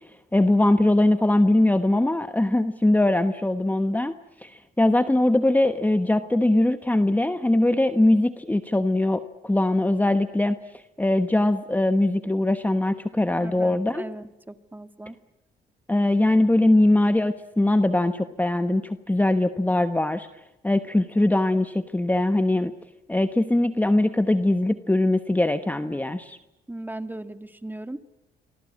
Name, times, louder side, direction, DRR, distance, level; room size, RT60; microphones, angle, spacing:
voice 1, 0.3-4.1 4.4-14.0 15.9-20.3 20.6-22.7 23.1-26.4, left 1 dB, 10° left, 9 dB, 1.2 m, -21 dB
voice 2, 13.4-15.2 26.7-28.0, right 1 dB, 10° right, 9 dB, 1.8 m, -37 dB
28.0 x 24.0 x 8.7 m, 0.95 s
cardioid pair, 90°, 20 cm